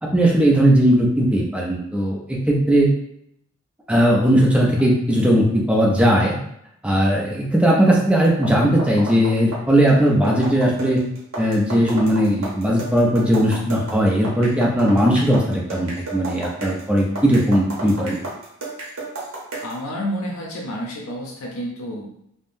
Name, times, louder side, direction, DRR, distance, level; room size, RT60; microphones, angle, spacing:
voice 1, 0.0-2.9 3.9-6.3 6.8-11.0 11.4-18.2, equal, 5° right, -3 dB, 0.4 m, -18 dB
sound 1, 8.2-19.8, right 2 dB, 75° right, 0.8 m, -33 dB
voice 2, 19.6-22.1, equal, 85° left, -2 dB, 0.6 m, -29 dB
3.5 x 2.1 x 2.5 m, 0.74 s
head